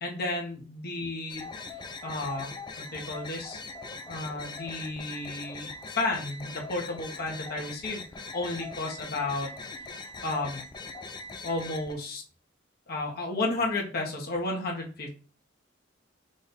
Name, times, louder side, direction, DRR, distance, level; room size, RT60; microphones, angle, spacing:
voice 1, 0.0-1.5 2.0-2.5 2.8-3.6 4.1-8.0 8.3-9.5 10.2-10.6 11.4-12.2 12.9-15.1, left 2 dB, 55° left, 0 dB, 1.0 m, -32 dB
sound 1, 1.3-11.9, left 3 dB, 25° left, 0.5 m, -41 dB
5.1 x 2.3 x 4.0 m, 0.39 s
head